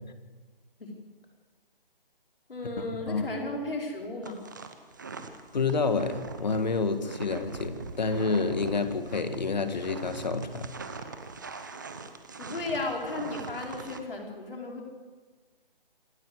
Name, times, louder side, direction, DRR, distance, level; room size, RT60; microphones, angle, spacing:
voice 1, 2.5-4.4 12.4-14.9, left 2 dB, 70° left, 0 dB, 5.0 m, -35 dB
sound 1, 4.2-14.0, right 4 dB, 20° right, 0.9 m, -41 dB
voice 2, 5.5-10.7, left 4 dB, 50° left, 9 dB, 1.9 m, -28 dB
26.5 x 12.5 x 8.2 m, 1.4 s
hypercardioid pair, 175°, 29 cm